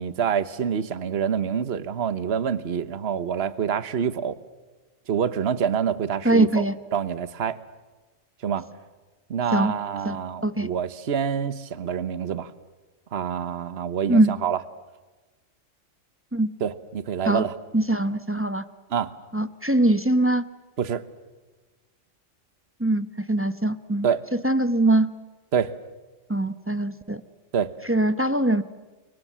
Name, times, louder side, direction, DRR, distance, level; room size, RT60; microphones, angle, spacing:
voice 1, 0.0-4.4 5.1-6.6 6.9-7.6 8.4-8.7 9.3-12.5 13.1-14.6 16.6-17.5 18.9-19.1 20.8-21.0 24.0-24.2 25.5-25.7 27.5-27.7, right 7 dB, 55° right, 14 dB, 1.3 m, -26 dB
voice 2, 6.2-6.7 9.5-9.7 10.0-10.2 10.4-10.7 14.1-14.3 16.3-16.5 17.2-17.4 17.7-18.6 19.3-20.4 22.8-24.1 24.4-25.1 26.3-27.2 27.8-28.6, right 1 dB, 10° right, 11 dB, 0.8 m, -22 dB
29.5 x 24.0 x 7.5 m, 1.2 s
omnidirectional pair, 1.3 m